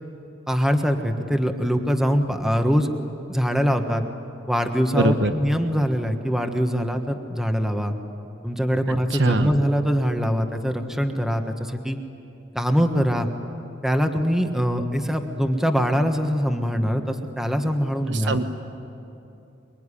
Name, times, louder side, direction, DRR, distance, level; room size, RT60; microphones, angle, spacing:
voice 1, 0.5-2.9 3.3-4.0 4.5-7.9 8.4-12.0 12.5-13.3 13.8-18.3, equal, 5° right, 5 dB, 1.4 m, -23 dB
voice 2, 4.9-5.3 8.9-9.5 18.1-18.5, right 2 dB, 75° right, 8 dB, 1.2 m, -23 dB
24.0 x 23.5 x 10.0 m, 2.8 s
head